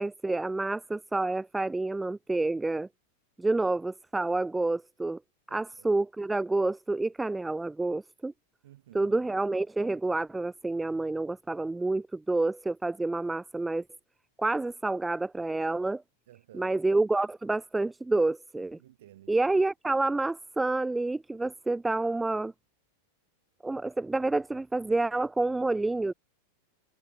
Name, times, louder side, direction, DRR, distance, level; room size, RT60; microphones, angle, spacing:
voice 1, 0.0-2.9 3.4-5.2 5.5-8.3 8.9-13.8 14.4-16.0 16.5-18.8 19.3-22.5 23.6-26.1, right 2 dB, 5° right, 0.7 m, -28 dB
voice 2, 5.5-5.9 8.6-9.2 16.3-16.9 18.8-19.4, right 14 dB, 55° right, 4.5 m, -53 dB
figure-of-eight pair, 90°, 0 cm